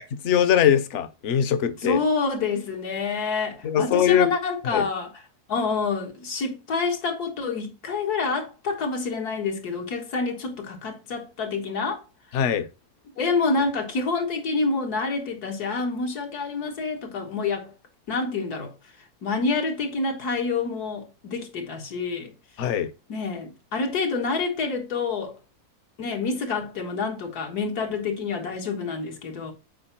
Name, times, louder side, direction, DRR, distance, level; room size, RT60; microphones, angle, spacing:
voice 1, 0.2-2.0 3.6-4.3 4.6-4.9 12.3-12.7 22.6-22.9, left 9 dB, 55° left, 1.0 m, -21 dB
voice 2, 1.8-5.2 5.5-12.0 13.2-17.7 18.1-18.7 19.2-22.3 23.1-25.3 26.0-29.5, left 4 dB, 80° left, 2.0 m, -27 dB
7.7 x 4.5 x 4.3 m
omnidirectional pair, 1.6 m